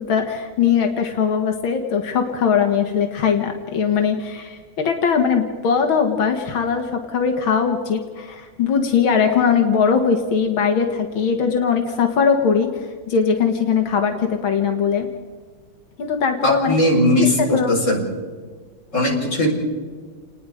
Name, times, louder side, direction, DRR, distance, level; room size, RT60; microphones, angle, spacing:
voice 1, 0.1-15.1 16.0-16.8 17.2-17.7, left 6 dB, 85° left, 4 dB, 2.4 m, -20 dB
voice 2, 16.4-18.0 18.9-19.5, left 1 dB, 35° left, -1 dB, 5.4 m, -18 dB
29.0 x 20.0 x 5.1 m, 1.5 s
omnidirectional pair, 2.2 m